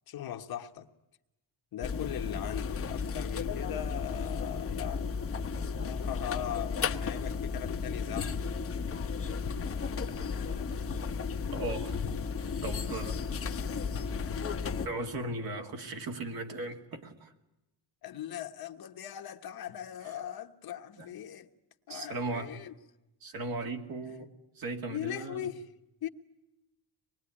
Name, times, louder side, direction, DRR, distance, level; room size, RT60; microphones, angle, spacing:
voice 1, 0.1-0.9 1.7-5.2 5.8-8.4 9.4-9.5 10.1-10.7 18.0-21.5 21.9-22.7 24.1-24.2 24.8-25.7 26.0-26.1, left 11 dB, 50° left, 1.4 m, -40 dB
sound 1, 1.8-14.9, left 5 dB, 30° left, 1.1 m, -34 dB
voice 2, 11.5-12.0 12.6-13.2 14.8-17.3 21.0-21.1 21.9-22.5 23.2-25.5, right 2 dB, 50° right, 2.5 m, -37 dB
25.5 x 21.0 x 9.9 m
cardioid pair, 175°, 45 cm